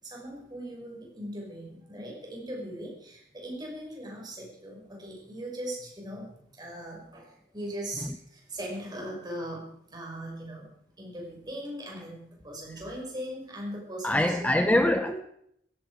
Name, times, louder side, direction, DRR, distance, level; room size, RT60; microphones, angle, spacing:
voice 1, 0.0-10.7 11.0-14.5 15.0-15.2, right 1 dB, 25° right, 5.8 m, -39 dB
voice 2, 14.0-15.1, left 1 dB, 10° left, 0.6 m, -24 dB
16.0 x 15.0 x 4.9 m
head